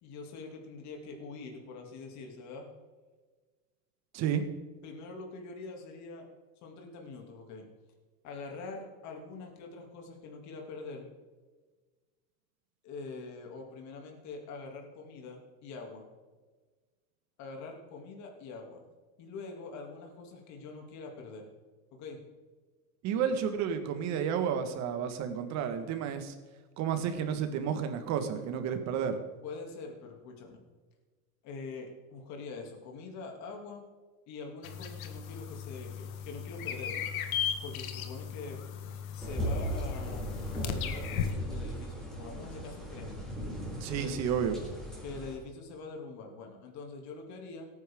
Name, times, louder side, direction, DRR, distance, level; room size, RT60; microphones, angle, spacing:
voice 1, 0.0-2.7 4.8-6.3 6.6-7.7 8.2-11.1 12.8-16.1 17.4-18.8 19.2-21.5 21.9-22.2 29.4-30.6 31.4-33.8 34.3-37.1 37.6-38.6 39.1-40.2 40.6-43.2 43.9-44.2 45.0-47.6, left 3 dB, 40° left, 2 dB, 2.9 m, -44 dB
voice 2, 4.1-4.4 23.0-26.3 26.8-29.2 43.8-44.5, right 8 dB, 40° right, 8 dB, 1.7 m, -31 dB
sound 1, 34.6-41.3, left 8 dB, 85° left, 1.6 m, -37 dB
sound 2, 39.2-45.3, equal, ahead, 4.0 m, -37 dB
17.0 x 9.8 x 3.8 m, 1.4 s
supercardioid pair, 140°, 41 cm